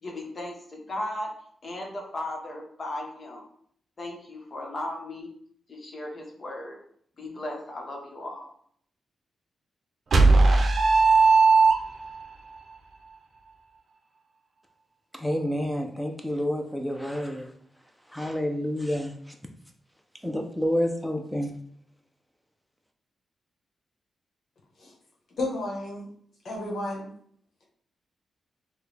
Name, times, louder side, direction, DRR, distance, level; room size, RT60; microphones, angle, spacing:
voice 1, 0.0-1.3 1.6-3.4 4.0-5.3 5.7-6.8 7.2-8.5, left 1 dB, 45° left, 0 dB, 1.2 m, -36 dB
sound 1, 10.1-12.2, right 3 dB, 55° right, 0.6 m, -17 dB
voice 2, 15.1-17.5 18.1-19.4 20.2-21.5, equal, ahead, 3 dB, 0.6 m, -29 dB
voice 3, 25.4-26.1 26.4-27.1, left 1 dB, 65° left, -2 dB, 1.2 m, -32 dB
4.6 x 2.3 x 3.4 m, 0.63 s
cardioid pair, 85°, 0 cm